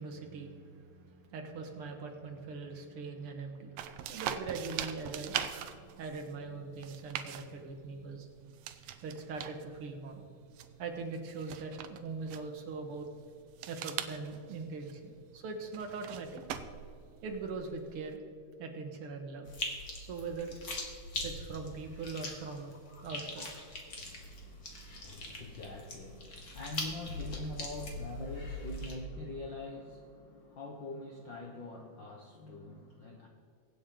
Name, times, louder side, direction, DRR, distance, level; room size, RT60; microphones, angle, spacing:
voice 1, 0.0-8.3 9.0-10.2 10.8-13.1 13.7-16.4 17.2-18.2 18.6-19.5 20.0-20.5 21.2-22.7 23.0-23.5, right 4 dB, 50° right, 3 dB, 2.0 m, -41 dB
sound 1, 3.8-18.2, right 10 dB, 80° right, 1.5 m, -43 dB
sound 2, 19.5-28.9, left 2 dB, 35° left, 1.9 m, -42 dB
voice 2, 22.9-33.3, left 2 dB, 65° left, 0 dB, 1.1 m, -45 dB
23.0 x 8.6 x 3.8 m, 2.4 s
omnidirectional pair, 3.7 m